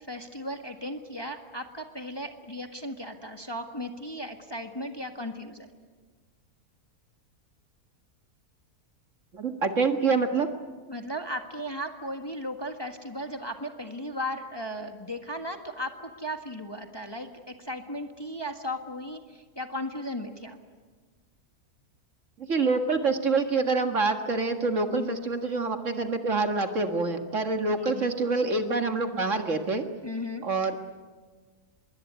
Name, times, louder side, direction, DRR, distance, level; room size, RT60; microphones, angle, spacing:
voice 1, 0.1-5.7 10.9-20.6 24.9-25.3 27.8-28.1 30.0-30.5, equal, 15° left, 5 dB, 1.6 m, -36 dB
voice 2, 9.3-10.5 22.4-29.8 30.4-30.9, right 3 dB, 50° right, 6 dB, 2.0 m, -26 dB
25.5 x 22.0 x 9.6 m, 1.4 s
omnidirectional pair, 1.6 m